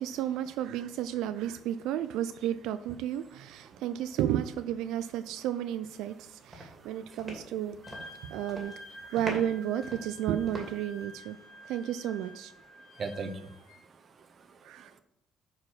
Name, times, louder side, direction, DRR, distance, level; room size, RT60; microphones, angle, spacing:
voice 1, 0.0-7.8 8.3-8.7 9.0-11.4 11.6-12.5 14.6-14.9, right 11 dB, 85° right, 11 dB, 0.3 m, -32 dB
sound 1, 6.0-6.2 6.5-8.2 8.4-8.8 9.2-11.0, right 1 dB, 20° right, 2.5 m, -42 dB
voice 2, 6.5-7.2 8.1-8.4 11.4-11.7 12.8-15.0, right 4 dB, 45° right, 8 dB, 0.8 m, -43 dB
Wind instrument woodwind instrument, 7.8-13.8, equal, 80° left, 1.5 m, -49 dB
6.2 x 4.7 x 6.0 m, 0.77 s
cardioid pair, 105°, 0 cm